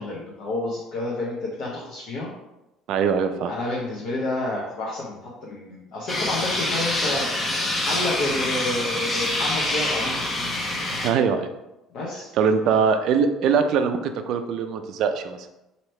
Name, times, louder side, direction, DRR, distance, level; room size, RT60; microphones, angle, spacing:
voice 1, 0.0-2.3 3.5-7.3 7.8-10.1 11.9-12.3 12.6-12.8, left 2 dB, 65° left, -5 dB, 0.9 m, -29 dB
voice 2, 2.9-3.5 11.0-11.5 12.4-15.5, right 6 dB, 65° right, 7 dB, 0.3 m, -22 dB
sound 1, 6.1-11.1, left 1 dB, 35° left, 1.0 m, -26 dB
3.0 x 2.8 x 4.2 m, 0.95 s
hypercardioid pair, 65°, 0 cm